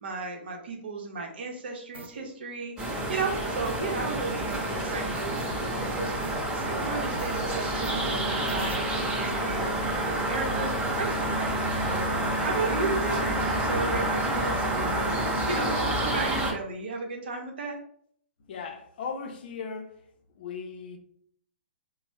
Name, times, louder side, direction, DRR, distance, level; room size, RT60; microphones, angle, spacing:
voice 1, 0.0-15.1 15.5-17.8, right 3 dB, 60° right, 0.7 m, -34 dB
sound 1, 1.9-2.3 2.8-4.2 4.5-5.7 6.2-8.8, right 4 dB, 80° right, 0.3 m, -42 dB
sound 2, 2.8-16.5, right 1 dB, 10° right, 0.8 m, -28 dB
voice 2, 18.5-19.9 20.4-21.0, left 5 dB, 55° left, 0.5 m, -37 dB
2.9 x 2.0 x 3.2 m
figure-of-eight pair, 120°, 6 cm